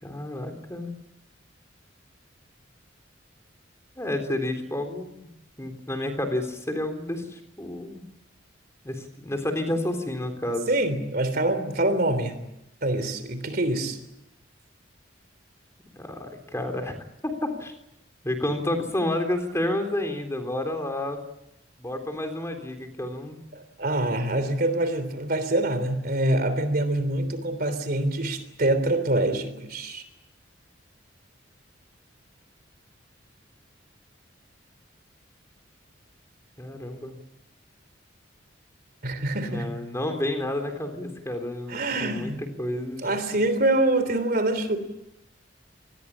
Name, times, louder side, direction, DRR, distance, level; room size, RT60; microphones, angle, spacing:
voice 1, 0.0-0.9 4.0-5.1 5.6-8.0 8.8-10.7 16.0-16.9 17.2-17.7 18.2-21.2 21.8-23.4 36.6-37.2 39.3-43.1, left 1 dB, 15° left, 5 dB, 3.7 m, -30 dB
voice 2, 10.7-12.4 12.8-14.0 23.5-30.0 39.0-39.7 41.7-42.4 43.0-44.8, right 1 dB, 50° right, 11 dB, 3.3 m, -25 dB
27.0 x 20.5 x 8.6 m, 0.84 s
head